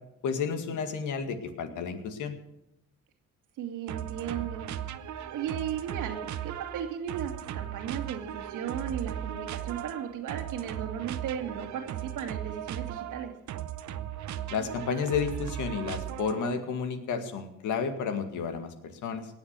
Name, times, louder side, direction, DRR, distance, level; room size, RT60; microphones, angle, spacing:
voice 1, 0.2-2.4 14.5-19.3, left 6 dB, 80° left, 7 dB, 2.0 m, -31 dB
voice 2, 3.6-4.7 5.3-13.3, right 8 dB, 90° right, 4 dB, 2.3 m, -36 dB
sound 1, 3.9-16.6, right 11 dB, 70° right, 0.9 m, -37 dB
18.5 x 7.2 x 8.2 m, 0.88 s
cardioid pair, 90°, 30 cm